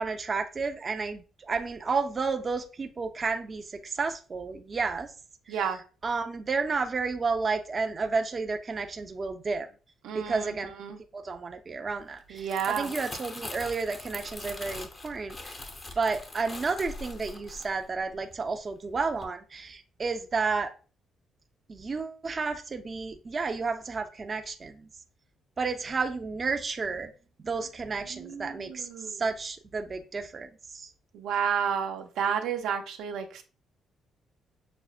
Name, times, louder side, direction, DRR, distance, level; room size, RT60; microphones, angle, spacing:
voice 1, 0.0-5.1 5.5-5.6 6.0-9.7 10.1-10.7 11.1-15.6 16.0-20.7 21.7-24.9 25.6-27.1 27.4-30.9, right 4 dB, 35° right, 0.4 m, -31 dB
voice 2, 5.5-5.8 10.0-10.5 10.8-11.0 12.3-12.9 28.1-29.2 31.1-33.4, right 7 dB, 85° right, 0.6 m, -31 dB
Crumpling crinkling, 12.2-18.6 18.9-19.2, left 2 dB, 35° left, 0.6 m, -42 dB
6.0 x 2.1 x 2.3 m
cardioid pair, 90°, 0 cm